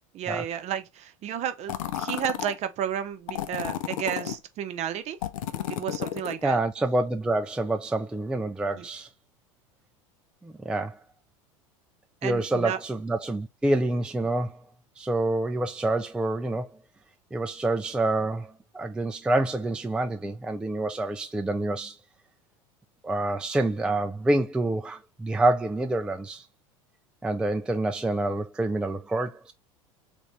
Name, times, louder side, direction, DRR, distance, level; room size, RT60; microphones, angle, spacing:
voice 1, 0.1-5.2 5.7-6.6 8.7-8.8 12.2-12.8, right 9 dB, 40° right, 0.7 m, -32 dB
sound 1, 1.7-2.5 3.3-4.4 5.2-6.4, left 10 dB, 70° left, 0.5 m, -32 dB
voice 2, 6.4-9.1 10.4-11.0 12.2-14.6 15.0-16.7 17.3-21.9 23.0-26.5 27.2-29.5, right 2 dB, 5° right, 0.4 m, -27 dB
3.4 x 2.5 x 3.3 m
hypercardioid pair, 80°, 18 cm